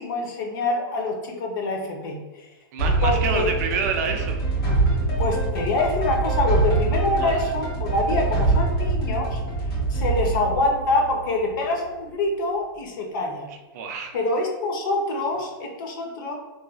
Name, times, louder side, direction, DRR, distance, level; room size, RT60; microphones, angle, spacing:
voice 1, 0.0-2.5 3.0-3.6 5.2-9.4 9.9-13.5 14.1-16.3, left 2 dB, 60° left, 2 dB, 0.6 m, -25 dB
voice 2, 2.7-4.4 7.2-7.4 13.7-14.2, right 6 dB, 45° right, 3 dB, 0.4 m, -28 dB
sound 1, 2.8-11.6, right 3 dB, 80° left, 1.5 m, -24 dB
3.1 x 2.2 x 2.4 m, 1.2 s
supercardioid pair, 160°, 12 cm